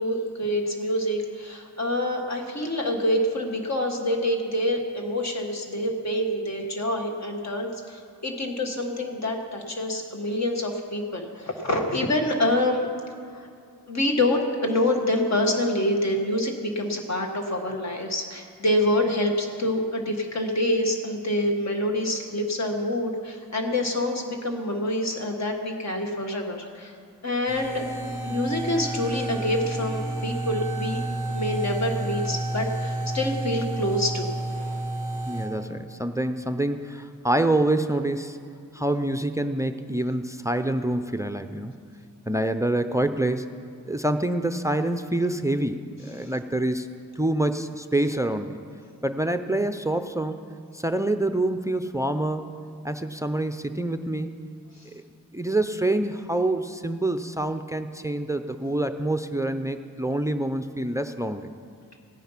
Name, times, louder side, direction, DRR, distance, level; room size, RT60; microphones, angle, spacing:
voice 1, 0.0-12.9 13.3-13.5 13.9-26.9 27.2-27.8 28.2-31.0 31.3-34.3 46.2-46.3, left 1 dB, 50° left, 3 dB, 1.6 m, -26 dB
sound 1, 27.4-35.5, right 1 dB, 30° left, 3.1 m, -30 dB
voice 2, 35.3-38.4 38.7-41.7 42.3-43.5 43.9-46.9 47.2-48.6 49.0-50.4 50.7-52.4 52.8-54.3 54.9-55.0 55.3-61.5, right 1 dB, 10° right, 9 dB, 0.4 m, -26 dB
16.5 x 9.4 x 5.8 m, 2.3 s
wide cardioid pair, 140°, 34 cm